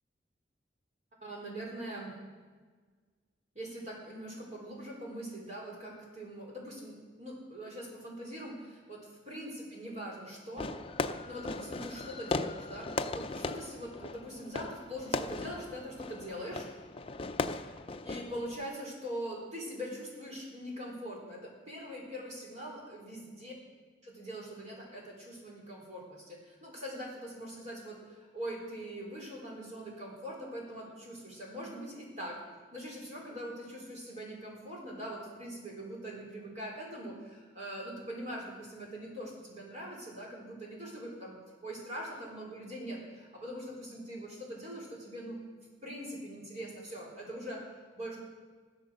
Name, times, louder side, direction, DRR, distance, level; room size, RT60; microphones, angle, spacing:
voice 1, 1.2-2.1 3.5-10.7 11.0-16.7 17.6-17.7 18.0-23.5 24.1-32.4 32.7-41.3 41.6-45.5 45.8-48.2, equal, 40° right, -2 dB, 4.4 m, -42 dB
Fireworks, 10.6-18.6, left 3 dB, 30° left, 0.5 m, -38 dB
15.0 x 12.5 x 6.5 m, 1.5 s
head